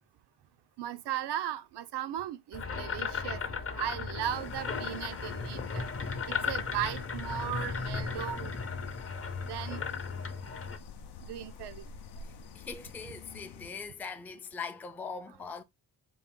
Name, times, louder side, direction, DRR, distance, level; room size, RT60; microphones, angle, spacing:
voice 1, 0.8-3.4 3.8-8.5 9.5-9.8 11.2-11.8, right 11 dB, 80° right, 0.6 m, -37 dB
sound 1, 2.5-10.8, left 5 dB, 35° left, 0.7 m, -36 dB
sound 2, 4.2-13.7, left 5 dB, 75° left, 0.6 m, -49 dB
voice 2, 12.5-15.6, left 5 dB, 5° left, 0.3 m, -41 dB
3.9 x 2.5 x 3.6 m
cardioid pair, 95°, 40 cm